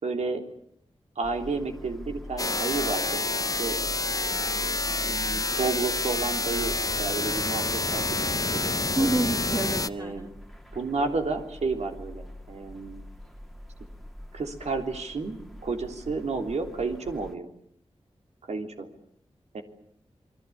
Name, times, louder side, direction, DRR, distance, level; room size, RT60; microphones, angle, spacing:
voice 1, 0.0-0.4 1.1-3.3 3.6-3.8 5.0-8.7 9.0-9.1 9.9-10.3 10.7-13.0 14.3-17.5 18.5-18.9 19.5-19.6, right 4 dB, 90° right, 5 dB, 3.5 m, -31 dB
sound 1, 1.2-17.4, left 1 dB, ahead, 2.0 m, -44 dB
sound 2, 2.4-9.9, left 2 dB, 35° left, 1.0 m, -28 dB
voice 2, 9.0-10.3, right 2 dB, 30° right, 2 dB, 2.3 m, -28 dB
28.0 x 22.0 x 8.7 m, 0.68 s
wide cardioid pair, 85°, 11 cm